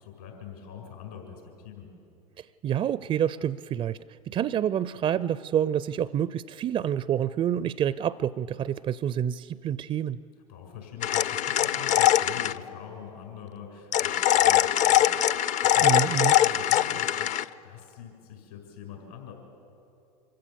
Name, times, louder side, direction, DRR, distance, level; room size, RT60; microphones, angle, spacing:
voice 1, 0.0-1.9 10.5-19.3, left 7 dB, 75° left, 1 dB, 5.9 m, -44 dB
voice 2, 2.4-4.0 4.3-10.2 15.8-16.3, right 10 dB, 30° right, 18 dB, 0.4 m, -28 dB
sound 1, 11.0-12.6 13.9-17.4, left 12 dB, 40° left, 0.5 m, -22 dB
25.0 x 15.5 x 7.1 m, 2.6 s
hypercardioid pair, 85°, 20 cm